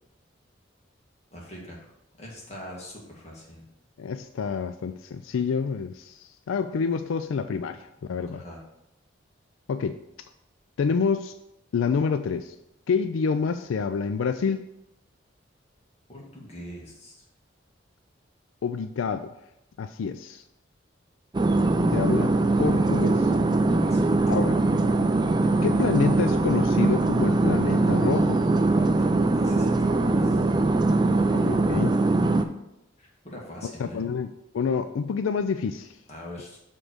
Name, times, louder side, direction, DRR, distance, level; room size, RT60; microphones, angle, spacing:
voice 1, 1.3-3.7 8.2-8.6 16.1-17.2 23.8-24.1 28.6-30.5 32.4-32.5 33.0-34.1 36.1-36.6, equal, 35° left, -3 dB, 1.9 m, -43 dB
voice 2, 4.0-8.4 9.7-10.0 10.8-11.3 11.7-12.5 12.9-14.6 18.6-19.3 19.8-20.4 21.9-22.3 22.6-23.3 24.3-24.6 25.6-28.4 31.1-32.0 33.6-35.9, left 5 dB, 85° left, 10 dB, 0.4 m, -28 dB
sound 1, 21.3-32.4, right 2 dB, 20° right, 0.4 m, -22 dB
7.1 x 3.8 x 6.4 m, 0.84 s
head